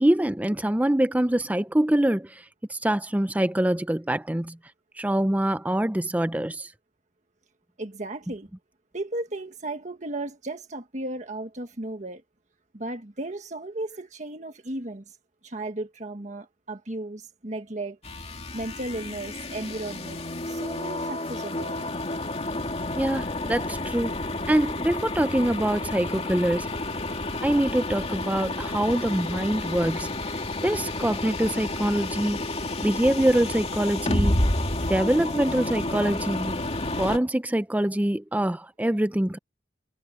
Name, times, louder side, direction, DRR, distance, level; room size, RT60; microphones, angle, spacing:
voice 1, 0.0-2.3 2.7-4.6 5.0-6.7 23.0-24.2 24.5-26.7 27.4-30.1 30.6-32.4 32.8-34.4 34.9-36.6 37.0-39.4, right 1 dB, 10° right, 0.5 m, -24 dB
voice 2, 7.8-8.5 8.9-12.2 12.7-15.0 15.4-18.0 18.5-20.2 20.5-21.9, right 2 dB, 40° right, 1.5 m, -35 dB
sound 1, 18.0-37.2, left 2 dB, 35° left, 2.4 m, -30 dB
head